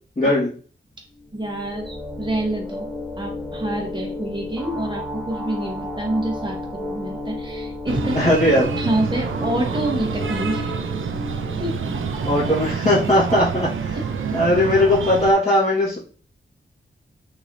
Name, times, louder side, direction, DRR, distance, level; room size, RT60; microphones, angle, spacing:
voice 1, 0.2-0.5 8.1-8.6 12.2-14.0 14.3-16.0, left 1 dB, 30° left, -10 dB, 1.5 m, -18 dB
sound 1, 1.2-12.7, left 2 dB, 5° right, 0.8 m, -32 dB
voice 2, 1.3-2.9 3.2-8.2 8.8-10.7 11.6-11.7, right 1 dB, 20° right, 0 dB, 1.1 m, -27 dB
Breathing, 7.9-15.3, right 6 dB, 75° right, 0.5 m, -28 dB
4.0 x 3.0 x 2.6 m, 0.40 s
wide cardioid pair, 90°, 21 cm